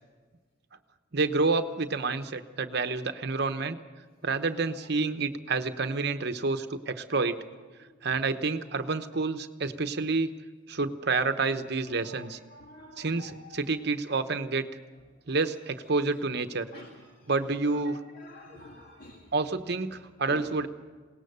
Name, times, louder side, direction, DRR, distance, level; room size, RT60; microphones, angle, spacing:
voice 1, 1.1-3.8 4.2-7.4 8.0-10.3 10.7-12.4 13.0-14.7 15.3-16.7 17.3-18.0 19.3-20.7, right 3 dB, 50° right, 9 dB, 0.9 m, -29 dB
voice 2, 12.0-13.6 16.7-16.9 17.7-19.3 20.3-20.5, left 2 dB, 45° left, -1 dB, 2.1 m, -48 dB
21.0 x 18.5 x 6.8 m, 1.4 s
head